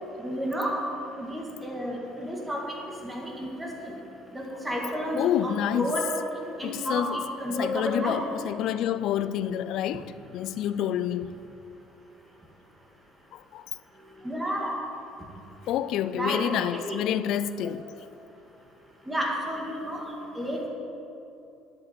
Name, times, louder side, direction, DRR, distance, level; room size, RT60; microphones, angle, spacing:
voice 1, 0.2-0.8 1.2-2.8 3.0-3.9 4.3-8.2 14.2-14.7 16.1-16.4 16.7-17.0 19.1-20.7, equal, 10° right, 1.9 m, -31 dB
voice 2, 5.2-5.9 6.6-7.2 7.6-11.3 13.5-13.6 15.7-17.8, left 10 dB, 55° left, 0.5 m, -28 dB
11.0 x 8.0 x 9.2 m
cardioid pair, 165°, 0 cm